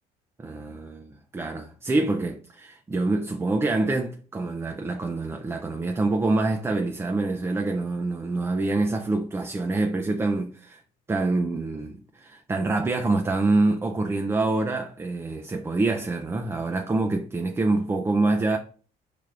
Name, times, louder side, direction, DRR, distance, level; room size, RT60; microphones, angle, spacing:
voice 1, 0.4-10.8 11.1-18.6, right 2 dB, 15° right, 0.4 m, -26 dB
5.5 x 3.3 x 2.4 m
cardioid pair, 110°, 17 cm